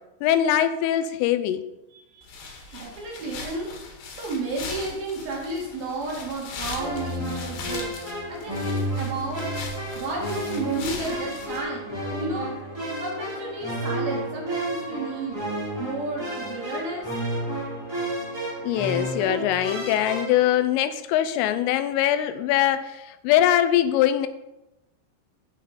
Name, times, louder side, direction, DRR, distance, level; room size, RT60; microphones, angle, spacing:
voice 1, 0.2-1.6 18.6-24.3, left 11 dB, 85° left, 11 dB, 3.1 m, -22 dB
voice 2, 1.9-9.5 9.9-12.6 13.0-15.4 15.8-17.1, right 3 dB, 55° right, -3 dB, 3.1 m, -32 dB
sound 1, 2.2-11.6, left 4 dB, 65° left, 3.4 m, -39 dB
sound 2, 6.7-20.5, equal, 5° right, 2.6 m, -31 dB
16.5 x 5.9 x 4.1 m, 0.94 s
omnidirectional pair, 5.8 m